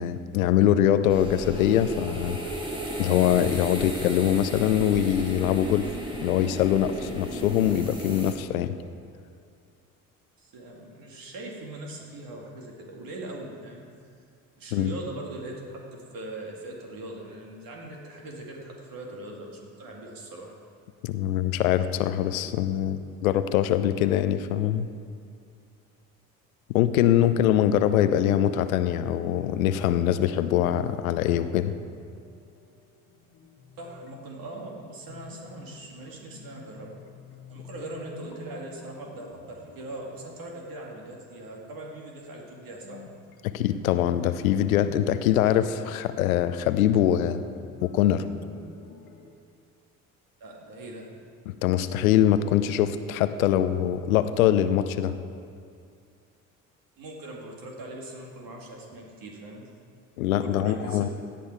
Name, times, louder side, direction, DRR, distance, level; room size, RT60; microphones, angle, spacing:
voice 1, 0.0-2.4 3.0-5.9 6.2-8.8 14.7-14.9 21.0-24.9 26.7-31.7 43.4-47.4 47.8-48.2 51.5-55.1 60.2-61.1, left 11 dB, 75° left, 12 dB, 0.6 m, -23 dB
sound 1, 1.1-8.3, right 1 dB, 10° right, 2.0 m, -35 dB
voice 2, 10.4-13.9 14.6-20.5 33.8-37.0 37.5-43.0 50.4-51.1 57.0-59.6 60.2-61.1, right 1 dB, 50° right, -1 dB, 2.3 m, -40 dB
sound 2, 30.8-49.3, left 5 dB, 60° left, 1.5 m, -50 dB
16.0 x 8.7 x 4.5 m, 2.3 s
figure-of-eight pair, 55°, 42 cm